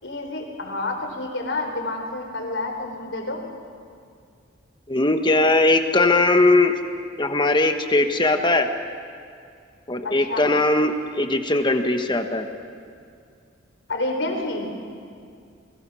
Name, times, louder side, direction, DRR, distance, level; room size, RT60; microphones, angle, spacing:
voice 1, 0.0-3.4 10.0-10.5 13.9-14.7, left 2 dB, 65° left, 3 dB, 4.4 m, -29 dB
voice 2, 4.9-6.7 7.2-8.7 9.9-12.5, left 2 dB, 25° left, 6 dB, 1.5 m, -19 dB
30.0 x 23.0 x 6.4 m, 2.3 s
head